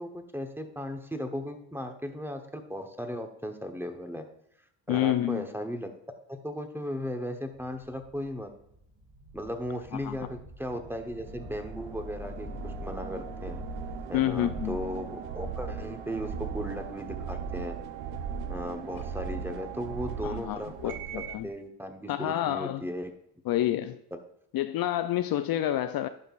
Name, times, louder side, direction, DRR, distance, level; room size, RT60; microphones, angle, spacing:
voice 1, 0.0-4.3 4.9-5.9 6.3-8.5 9.3-13.6 14.1-17.8 18.5-23.1 24.1-24.2, equal, 5° right, 6 dB, 1.0 m, -36 dB
voice 2, 4.9-5.5 10.0-10.2 14.1-14.8 20.2-21.5 22.1-22.8 23.5-24.0 24.5-26.1, left 13 dB, 55° left, 10 dB, 0.5 m, -28 dB
sound 1, 8.6-16.2, left 2 dB, 35° right, 2.1 m, -46 dB
sound 2, 10.9-21.5, right 6 dB, 85° right, 0.8 m, -38 dB
11.5 x 5.3 x 2.4 m, 0.75 s
supercardioid pair, 75°, 44 cm